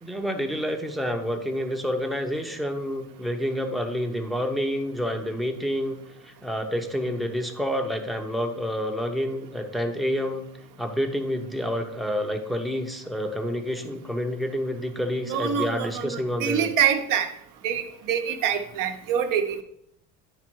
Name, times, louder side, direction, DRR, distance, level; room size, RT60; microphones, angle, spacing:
voice 1, 0.0-6.0 6.2-10.5 10.8-16.7, equal, ahead, 3 dB, 0.7 m, -28 dB
voice 2, 15.3-17.3 17.6-19.6, right 8 dB, 60° right, 5 dB, 0.8 m, -25 dB
10.0 x 3.4 x 4.6 m, 0.72 s
cardioid pair, 125°, 37 cm